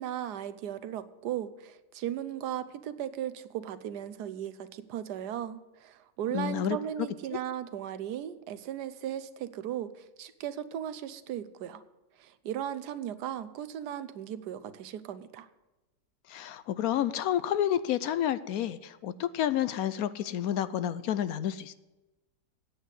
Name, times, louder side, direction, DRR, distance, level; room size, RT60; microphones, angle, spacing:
voice 1, 0.0-11.8 12.2-15.5, right 10 dB, 75° right, 13 dB, 1.2 m, -37 dB
voice 2, 6.3-6.8 16.3-21.7, left 10 dB, 70° left, 14 dB, 0.9 m, -30 dB
9.3 x 8.1 x 8.1 m, 1.1 s
omnidirectional pair, 1.8 m